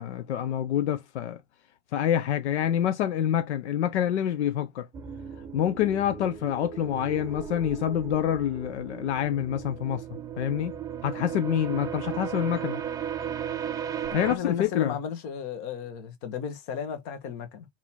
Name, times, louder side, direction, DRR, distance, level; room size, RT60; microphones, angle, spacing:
voice 1, 0.0-1.4 1.9-4.9 5.5-10.0 10.4-10.7 11.0-12.8 14.1-15.0, left 10 dB, 75° left, 0.7 m, -27 dB
sound 1, 4.9-14.4, right 8 dB, 10° right, 0.5 m, -36 dB
voice 2, 14.2-17.7, left 8 dB, 45° left, 1.4 m, -34 dB
4.0 x 2.9 x 4.4 m
supercardioid pair, 140°, 34 cm